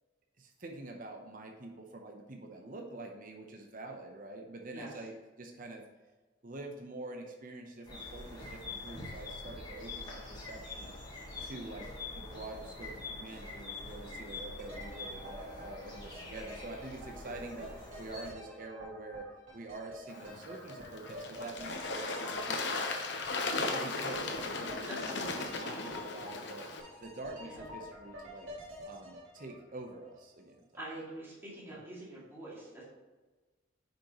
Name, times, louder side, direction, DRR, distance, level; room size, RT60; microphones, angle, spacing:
voice 1, 0.4-5.8 6.4-11.0 11.4-19.2 19.5-22.8 23.5-26.7 27.0-28.5 28.8-30.6, right 2 dB, 45° right, 2 dB, 0.8 m, -46 dB
sound 1, 7.9-18.3, left 3 dB, 20° left, 1.6 m, -45 dB
voice 2, 11.5-11.8 24.8-25.9 27.4-27.6 30.7-32.9, right 1 dB, 10° right, -8 dB, 2.3 m, -46 dB
sound 2, 14.6-30.5 30.8-30.9, equal, 80° right, 2.3 m, -49 dB
Bird / Water, 20.1-26.8, left 3 dB, 60° left, 0.9 m, -37 dB
8.8 x 5.3 x 3.0 m, 1.2 s
head